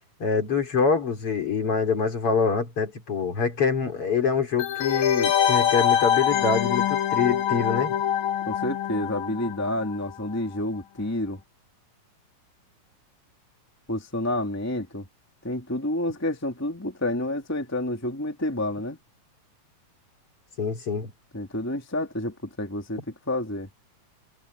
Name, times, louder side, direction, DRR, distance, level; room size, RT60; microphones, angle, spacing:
voice 1, 0.2-8.0 20.6-21.1, left 5 dB, 45° left, 4.1 m, -25 dB
sound 1, 4.6-10.1 10.3-10.4, left 9 dB, 60° left, 2.8 m, -24 dB
voice 2, 8.4-11.4 13.9-15.1 15.4-19.0 21.3-23.7, left 1 dB, 5° left, 2.5 m, -29 dB
omnidirectional pair, 3.9 m